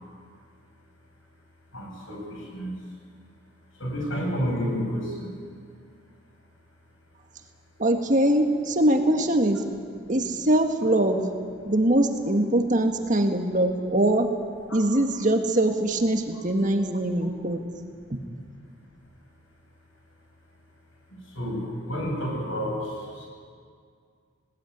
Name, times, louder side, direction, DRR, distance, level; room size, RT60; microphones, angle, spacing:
voice 1, 1.7-2.8 3.7-5.4 10.0-10.1 11.7-11.8 18.3-18.4 21.1-23.3, equal, 80° left, 0 dB, 7.3 m, -31 dB
voice 2, 7.8-9.6 10.1-11.3 11.6-14.3 14.7-17.6, right 1 dB, 40° right, 4 dB, 1.8 m, -22 dB
19.5 x 19.5 x 9.4 m, 2.1 s
head